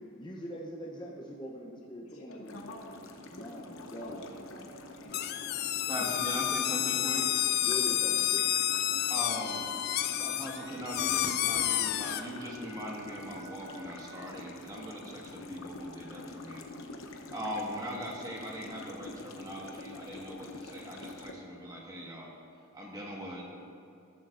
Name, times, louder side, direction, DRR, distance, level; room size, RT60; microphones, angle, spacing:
voice 1, 0.2-2.5 3.3-4.3 7.6-8.5, equal, 20° left, -2 dB, 0.7 m, -42 dB
voice 2, 2.1-3.0 3.6-5.6 6.3-6.4 7.7-8.1, left 1 dB, 90° left, -1 dB, 1.8 m, -50 dB
sound 1, 2.5-21.3, left 2 dB, 70° left, 0.9 m, -46 dB
sound 2, 5.1-12.2, left 12 dB, 45° left, 0.3 m, -30 dB
voice 3, 5.9-7.2 9.1-9.6 10.2-16.6 17.2-22.3 22.7-23.5, equal, 15° right, -2 dB, 1.5 m, -40 dB
Harmonica, 6.6-14.2, right 2 dB, 70° right, 2.8 m, -52 dB
13.5 x 13.0 x 2.6 m, 2.5 s
head